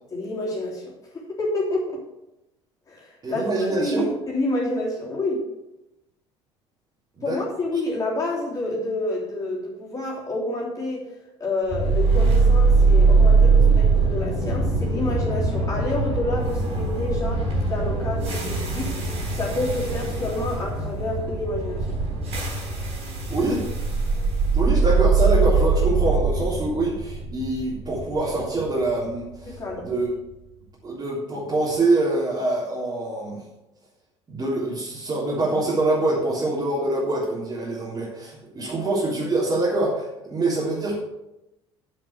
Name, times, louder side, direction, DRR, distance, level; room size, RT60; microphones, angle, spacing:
voice 1, 0.1-2.0 2.9-3.5 3.8-5.4 7.2-11.0 11.4-18.9 19.3-21.9 29.4-29.9 38.6-38.7, left 2 dB, 25° left, -5 dB, 3.3 m, -28 dB
voice 2, 3.2-4.1 7.2-7.4 23.3-23.6 24.5-30.1 30.8-33.4 34.3-41.0, right 2 dB, 25° right, -7 dB, 3.6 m, -25 dB
sound 1, 11.7-29.8, right 4 dB, 45° right, 4.7 m, -22 dB
8.8 x 7.4 x 6.5 m, 0.95 s
figure-of-eight pair, 60°, 15 cm